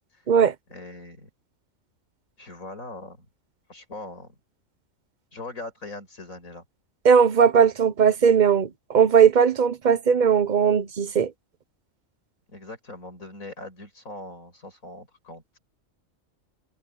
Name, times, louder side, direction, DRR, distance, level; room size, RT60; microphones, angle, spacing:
voice 1, 0.7-1.3 2.4-3.3 3.7-4.3 5.3-6.6 12.5-15.6, left 2 dB, 80° left, 5.8 m, -41 dB
voice 2, 7.0-11.3, right 7 dB, 40° right, 0.8 m, -18 dB
omnidirectional pair, 1.4 m